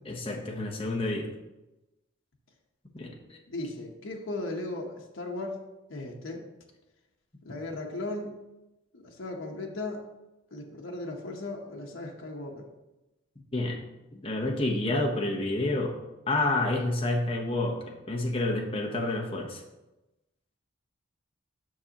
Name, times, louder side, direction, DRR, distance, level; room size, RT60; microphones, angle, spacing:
voice 1, 0.1-1.3 2.9-3.4 13.5-13.8 14.1-16.0 16.3-19.6, left 2 dB, 25° left, 1 dB, 0.8 m, -29 dB
voice 2, 3.5-5.6 5.9-6.4 7.4-8.3 8.9-10.0 10.5-12.7, left 2 dB, 75° left, 1 dB, 0.9 m, -36 dB
7.5 x 6.2 x 2.9 m, 1.0 s
head